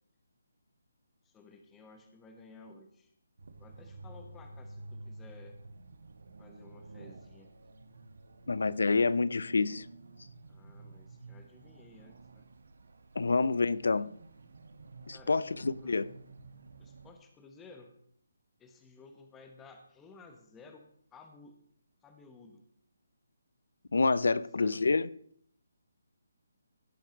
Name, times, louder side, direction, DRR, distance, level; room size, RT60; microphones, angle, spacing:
voice 1, 1.2-3.1 3.6-5.6 6.4-7.5 10.4-12.4 15.1-16.0 16.8-17.9 18.6-20.9 21.1-21.6 22.0-22.6 24.3-24.8, left 4 dB, 10° left, 1.0 m, -55 dB
sound 1, 3.4-17.1, right 2 dB, 70° right, 1.2 m, -51 dB
voice 2, 8.5-9.9 13.2-14.1 15.1-16.1 23.9-25.1, left 4 dB, 80° left, 0.5 m, -27 dB
16.5 x 5.9 x 5.2 m
hypercardioid pair, 170°, 0 cm